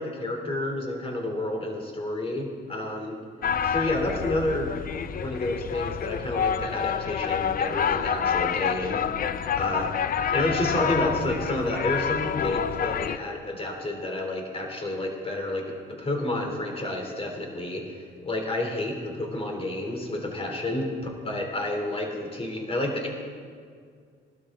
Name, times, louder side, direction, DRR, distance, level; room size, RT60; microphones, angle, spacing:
voice 1, 0.0-3.2 3.6-4.7 5.1-9.0 9.6-9.9 10.3-20.9 21.2-23.1, left 1 dB, 30° left, 2 dB, 3.2 m, -30 dB
sound 1, 3.4-13.2, left 8 dB, 45° left, 0.6 m, -28 dB
20.0 x 12.5 x 3.8 m, 2.1 s
cardioid pair, 90°, 20 cm